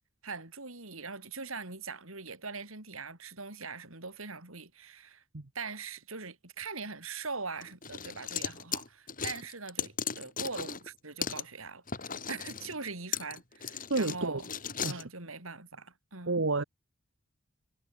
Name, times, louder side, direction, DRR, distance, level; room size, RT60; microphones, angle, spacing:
voice 1, 0.2-5.2 5.5-14.5 14.8-16.4, right 4 dB, 80° right, 5.7 m, -42 dB
Lego Bricks, 7.6-10.9 11.2-11.4 11.9-15.0, left 7 dB, 40° left, 5.5 m, -37 dB
voice 2, 13.9-14.4 14.8-15.0 16.3-16.6, right 3 dB, 65° right, 1.2 m, -30 dB
head